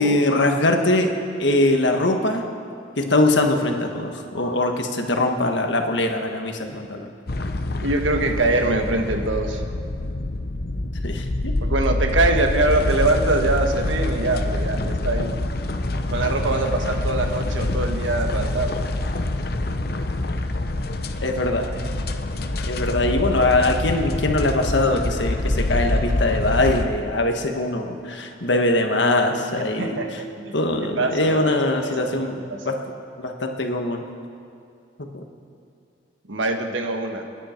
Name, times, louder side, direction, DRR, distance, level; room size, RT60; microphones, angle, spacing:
voice 1, 0.0-2.4 3.0-7.1 11.0-11.6 21.2-21.7 22.7-30.0 30.5-32.8 33.2-34.1 35.0-35.2, left 2 dB, 70° left, 4 dB, 1.5 m, -22 dB
sound 1, 7.3-26.8, left 2 dB, 50° left, 0.8 m, -26 dB
voice 2, 7.8-9.6 11.6-15.4 16.1-18.8 29.6-30.5 30.9-32.2 32.5-32.7 36.3-37.3, right 2 dB, 85° right, 4 dB, 1.5 m, -23 dB
29.5 x 9.9 x 4.5 m, 2.4 s
head